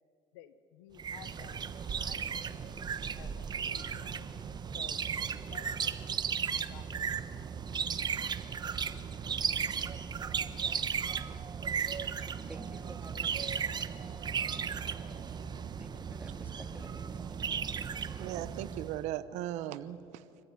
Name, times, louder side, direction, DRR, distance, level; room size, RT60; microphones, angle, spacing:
voice 1, 0.3-4.3 4.7-5.1 5.5-6.0 6.7-7.6, left 12 dB, 85° left, 13 dB, 1.1 m, -54 dB
sound 1, 1.0-19.0, right 7 dB, 35° right, 1.1 m, -35 dB
voice 2, 12.5-13.5 15.8-17.4 20.3-20.4, right 2 dB, 10° right, 5 dB, 2.6 m, -52 dB
voice 3, 18.2-20.2, right 13 dB, 70° right, 13 dB, 1.0 m, -37 dB
25.5 x 15.0 x 9.8 m, 2.5 s
supercardioid pair, 80°, 12 cm